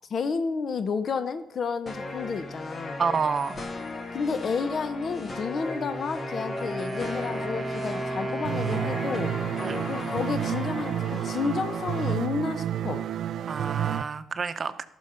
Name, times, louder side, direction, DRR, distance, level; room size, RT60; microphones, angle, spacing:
voice 1, 0.1-3.0 4.1-9.3 9.9-13.0, left 5 dB, 50° left, 12 dB, 0.7 m, -31 dB
sound 1, 1.9-12.1, left 2 dB, 35° left, 1.3 m, -37 dB
voice 2, 3.0-3.6 9.6-9.8 13.5-14.8, right 5 dB, 45° right, 11 dB, 0.8 m, -28 dB
Wind instrument woodwind instrument, 5.5-11.2, right 1 dB, 10° right, 3.3 m, -35 dB
sound 2, 8.5-14.0, right 11 dB, 70° right, 0.3 m, -30 dB
13.5 x 6.2 x 5.6 m, 0.78 s
cardioid pair, 90°, 0 cm